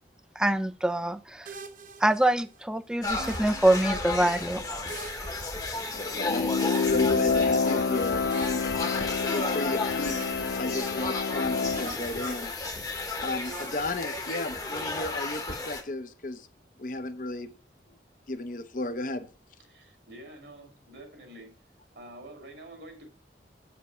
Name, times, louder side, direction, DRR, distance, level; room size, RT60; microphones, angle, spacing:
voice 1, 0.4-1.5 2.0-4.6, right 1 dB, 5° right, 0.3 m, -25 dB
sound 1, 1.5-2.6 3.2-4.3 4.9-6.2 6.6-7.8 8.3-9.7 10.0-11.4 11.7-12.9 13.5-14.8, right 3 dB, 45° right, 0.7 m, -46 dB
sound 2, 3.0-15.8, left 3 dB, 20° left, 1.0 m, -33 dB
voice 2, 5.9-8.6 9.3-10.2 10.6-12.5 13.2-16.5 16.8-17.5 18.3-19.3, left 2 dB, 45° left, 0.7 m, -33 dB
sound 3, 6.2-11.9, left 4 dB, 70° left, 0.3 m, -28 dB
voice 3, 19.7-21.6 21.9-23.2, right 1 dB, 75° right, 2.3 m, -47 dB
8.2 x 5.1 x 5.5 m
head